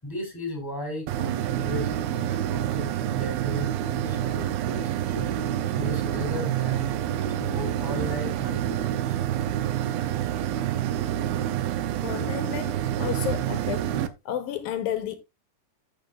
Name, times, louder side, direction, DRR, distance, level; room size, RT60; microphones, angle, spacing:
voice 1, 0.0-9.3, left 1 dB, 5° left, 4.4 m, -36 dB
sound 1, 1.1-14.1, right 11 dB, 75° right, 2.4 m, -27 dB
voice 2, 12.0-14.0 14.3-15.2, left 10 dB, 75° left, 2.3 m, -32 dB
14.5 x 6.8 x 2.5 m
omnidirectional pair, 4.8 m